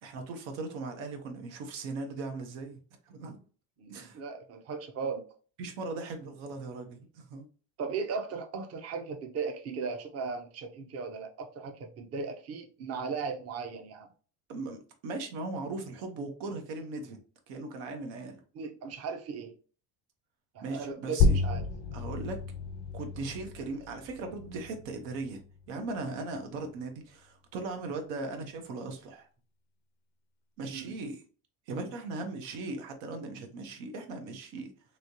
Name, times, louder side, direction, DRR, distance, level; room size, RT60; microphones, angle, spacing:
voice 1, 0.0-2.8 3.1-3.4 3.9-4.2 5.6-7.4 14.5-17.2 17.5-18.4 20.6-21.4 21.9-22.4 22.9-29.3 30.6-31.2 31.7-34.7, right 3 dB, 90° right, 0.9 m, -38 dB
voice 2, 3.8-5.2 7.8-14.1 18.5-19.5 20.5-21.7 30.7-30.9, right 5 dB, 35° right, 0.6 m, -37 dB
sound 1, 21.2-26.3, left 3 dB, 45° left, 0.4 m, -31 dB
3.1 x 2.7 x 2.6 m
cardioid pair, 125°, 43 cm